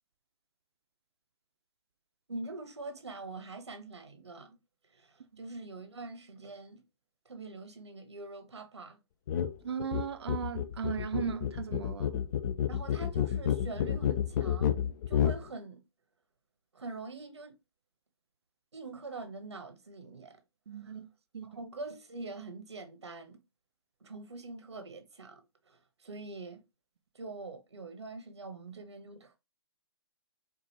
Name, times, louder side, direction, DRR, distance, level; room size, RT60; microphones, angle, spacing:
voice 1, 2.3-4.6 4.8-6.8 7.2-9.0 12.7-15.8 16.7-17.6 18.7-20.4 20.8-21.0 21.4-23.4 24.0-26.6 27.1-29.4, right 3 dB, 90° right, 0.9 m, -44 dB
sound 1, 9.3-9.5 9.8-15.4, left 9 dB, 45° left, 0.4 m, -30 dB
voice 2, 9.6-12.2 20.7-21.1 21.3-21.5, right 7 dB, 70° right, 0.5 m, -36 dB
4.5 x 2.5 x 2.7 m
hypercardioid pair, 140°, 14 cm